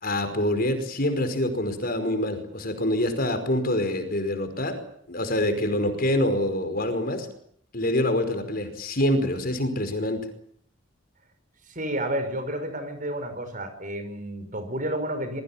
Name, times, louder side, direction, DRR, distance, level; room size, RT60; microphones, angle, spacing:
voice 1, 0.0-4.8 5.1-7.3 7.7-10.3, left 1 dB, 50° left, 8 dB, 5.1 m, -26 dB
voice 2, 11.7-15.4, right 1 dB, 45° right, 9 dB, 5.7 m, -31 dB
27.0 x 22.0 x 7.3 m, 0.66 s
head